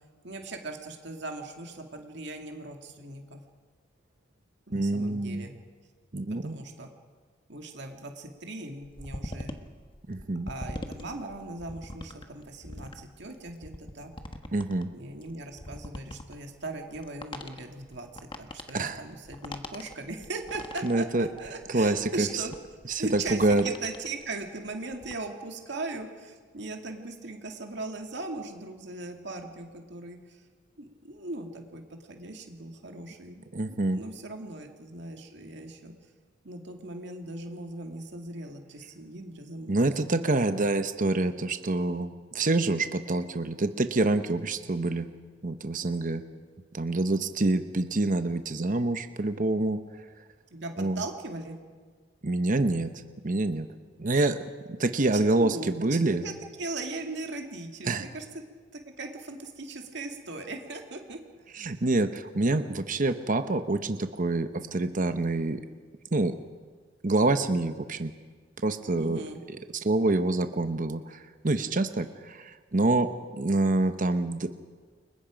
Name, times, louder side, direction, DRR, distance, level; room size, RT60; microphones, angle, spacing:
voice 1, 0.2-3.4 4.7-5.5 6.1-6.9 7.5-9.5 10.5-14.1 14.9-22.5 23.0-30.4 30.8-31.8 32.1-35.9 36.4-39.8 50.5-51.6 55.3-56.3 56.6-58.4 58.7-61.2 61.6-61.8 69.0-69.4, right 2 dB, 65° right, 3 dB, 2.3 m, -39 dB
voice 2, 4.7-5.5 6.1-6.6 10.1-10.5 14.5-14.9 18.7-19.0 20.8-21.3 21.7-22.4 22.9-23.6 33.5-34.0 39.7-45.1 45.4-46.2 46.7-49.8 50.8-51.0 52.2-52.9 53.2-53.7 54.0-54.4 54.7-56.2 57.9-58.1 61.5-65.6 66.1-66.4 67.0-68.1 68.6-69.2 69.7-74.5, right 2 dB, 45° right, 9 dB, 0.9 m, -26 dB
sound 1, 8.8-24.3 24.7-25.1, left 1 dB, 25° left, 1.3 m, -42 dB
29.5 x 22.5 x 5.2 m, 1.5 s
head